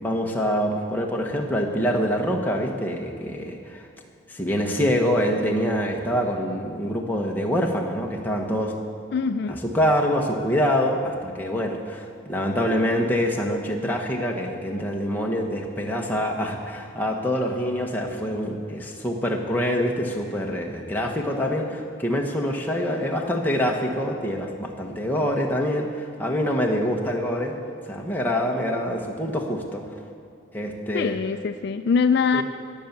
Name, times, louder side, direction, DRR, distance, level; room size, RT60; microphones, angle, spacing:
voice 1, 0.0-3.9 4.3-8.7 9.5-27.6 27.9-29.8 30.5-31.2 32.3-32.4, equal, 10° left, 0 dB, 1.2 m, -25 dB
voice 2, 9.1-9.6 30.9-32.4, left 5 dB, 55° left, 9 dB, 0.3 m, -23 dB
18.5 x 7.0 x 7.3 m, 2.5 s
head